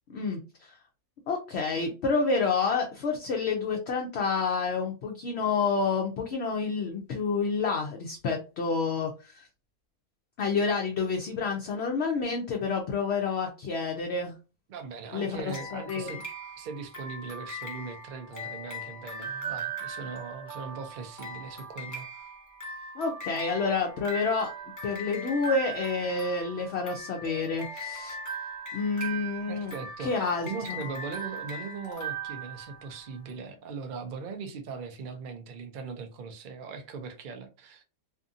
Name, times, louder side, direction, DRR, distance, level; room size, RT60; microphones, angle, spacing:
voice 1, 0.1-0.8 1.3-9.5 10.4-14.3 15.1-16.1 23.0-24.5 24.8-28.2 28.7-29.7 30.0-30.8, left 4 dB, 65° left, 0.7 m, -29 dB
voice 2, 14.7-16.2 16.6-22.1 29.5-37.8, right 5 dB, 90° right, 0.4 m, -40 dB
sound 1, 15.5-33.2, right 2 dB, 15° left, 0.7 m, -39 dB
2.7 x 2.5 x 2.5 m
omnidirectional pair, 1.5 m